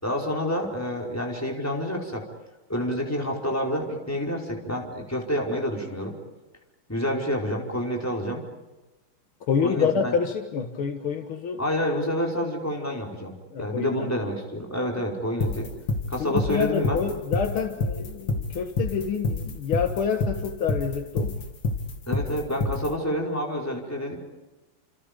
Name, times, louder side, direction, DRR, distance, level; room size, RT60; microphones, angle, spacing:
voice 1, 0.0-2.3 2.7-6.1 6.9-8.4 9.6-10.1 11.6-15.7 16.1-17.0 22.1-24.2, equal, 5° left, -1 dB, 5.0 m, -28 dB
voice 2, 9.5-11.6 13.5-14.1 16.2-21.4, left 6 dB, 85° left, 4 dB, 2.4 m, -27 dB
sound 1, 15.4-22.9, left 3 dB, 65° left, 3.1 m, -27 dB
30.0 x 29.0 x 5.4 m, 1.1 s
omnidirectional pair, 2.3 m